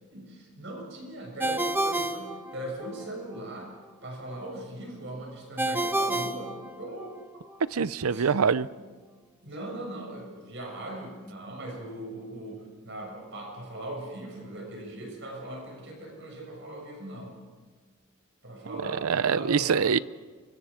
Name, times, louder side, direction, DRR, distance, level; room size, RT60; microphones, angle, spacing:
voice 1, 0.1-3.7 4.0-7.1 8.0-8.3 8.8-8.9 9.4-17.4 18.4-20.0, right 1 dB, 55° right, 1 dB, 6.9 m, -39 dB
Ringtone, 1.4-3.1 5.6-7.3, right 1 dB, 10° right, 1.0 m, -29 dB
voice 2, 7.7-8.7 19.0-20.0, right 6 dB, 90° right, 18 dB, 0.6 m, -24 dB
28.5 x 24.0 x 5.1 m, 1.4 s
head